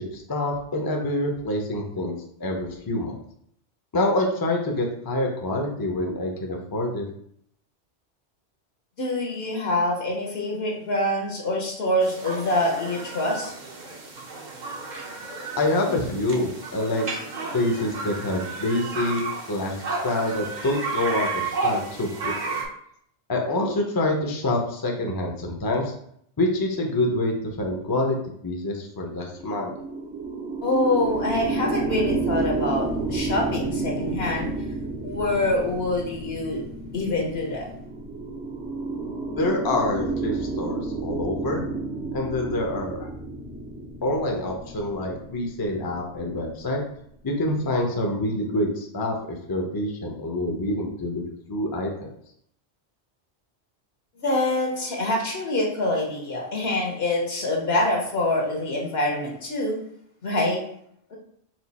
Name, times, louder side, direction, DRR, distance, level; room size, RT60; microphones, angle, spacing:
voice 1, 0.1-3.2 3.9-7.1 15.6-17.1 17.5-19.2 19.5-19.8 20.0-22.6 23.3-25.9 26.4-28.2 28.4-29.7 39.4-41.6 42.1-43.1 44.0-46.8 47.2-49.2 49.5-51.2 51.5-52.1, left 1 dB, 25° left, 1 dB, 0.6 m, -26 dB
voice 2, 9.0-13.5 30.6-34.5 35.0-36.6 36.9-37.7 54.2-59.8 60.2-60.6, left 1 dB, 70° left, -1 dB, 1.2 m, -25 dB
sound 1, 12.0-22.7, right 3 dB, 45° right, 0.8 m, -32 dB
sound 2, 29.3-46.7, right 3 dB, 80° right, 1.9 m, -31 dB
4.4 x 2.4 x 4.1 m, 0.68 s
omnidirectional pair, 1.1 m